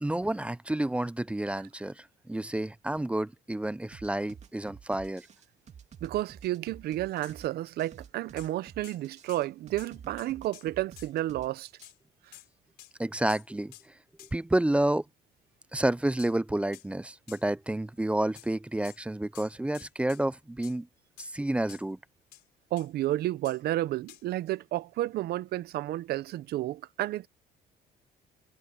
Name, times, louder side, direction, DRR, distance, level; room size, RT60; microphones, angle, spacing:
voice 1, 0.0-5.3 13.0-13.7 14.2-15.0 15.7-20.9 21.2-22.0, right 1 dB, 5° right, 0.5 m, -30 dB
sound 1, 3.9-11.9, right 7 dB, 40° right, 2.8 m, -49 dB
voice 2, 6.0-11.7 22.7-27.3, right 15 dB, 70° right, 0.7 m, -31 dB
sound 2, 7.2-7.4 8.4-8.5 8.8-9.0 9.3-9.5 9.8-9.9 10.2-11.1 11.8-12.0 12.3-12.5 12.8-12.9 13.3-13.5 13.7-13.9 14.2-14.3 16.2-16.3 16.7-16.9 17.3-17.4 18.4-18.5 18.8-19.0 19.4-20.2 20.6-20.8 21.2-21.3 21.7-21.9 22.3-22.4 22.8-22.9 23.5-23.6 24.1-24.2, left 17 dB, 85° left, 4.6 m, -51 dB
cardioid pair, 110°, 17 cm